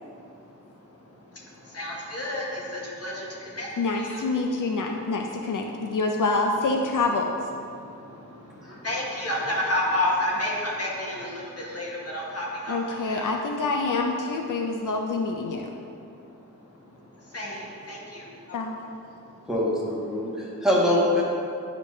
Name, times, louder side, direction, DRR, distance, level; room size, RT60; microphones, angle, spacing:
voice 1, 1.7-2.4 3.0-3.2 3.6-3.7 3.9-4.2 8.8-12.8 13.1-13.3 17.3-17.6 17.9-18.2, left 1 dB, 50° left, -4 dB, 1.4 m, -29 dB
voice 2, 3.8-7.3 12.7-15.7 18.5-18.8, left 3 dB, 75° left, 2 dB, 0.5 m, -26 dB
voice 3, 19.5-21.2, left 1 dB, ahead, -7 dB, 1.6 m, -23 dB
10.5 x 5.1 x 2.7 m, 2.6 s
wide cardioid pair, 80°, 31 cm